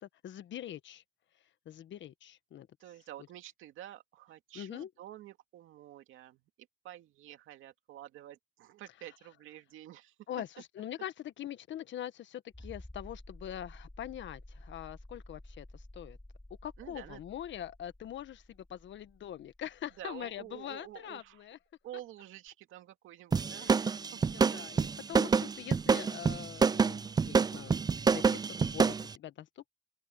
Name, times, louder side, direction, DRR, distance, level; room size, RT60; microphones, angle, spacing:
voice 1, 0.0-1.0 1.6-2.7 4.5-4.9 10.3-16.2 16.6-21.6 23.6-29.7, left 11 dB, 70° left, 1.3 m, -43 dB
voice 2, 2.8-10.1 16.8-17.2 20.0-21.5 21.8-24.5, right 13 dB, 85° right, 2.3 m, -49 dB
sound 1, 12.5-21.0 22.5-22.6, left 1 dB, 10° left, 4.3 m, -52 dB
sound 2, 23.3-29.1, right 5 dB, 20° right, 0.3 m, -27 dB
open air
cardioid pair, 90°, 20 cm